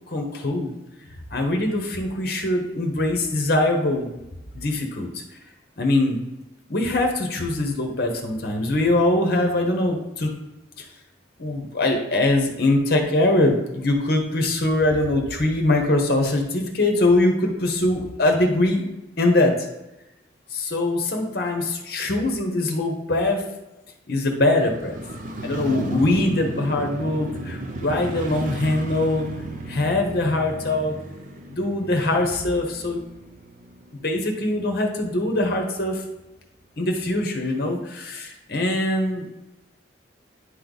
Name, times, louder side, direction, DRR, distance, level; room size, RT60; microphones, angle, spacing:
voice 1, 0.1-0.7 1.3-4.1 4.5-5.2 5.8-6.2 6.7-10.3 10.8-10.9 11.4-18.8 19.2-19.5 20.5-23.4 24.1-25.0 25.4-29.3 29.7-31.0 31.5-33.0 34.0-36.0 36.8-39.3, left 2 dB, 50° left, 3 dB, 1.0 m, -22 dB
Motorcycle, 24.6-34.7 35.0-35.1, right 1 dB, 45° right, 0.6 m, -34 dB
9.8 x 3.3 x 3.9 m, 0.98 s
head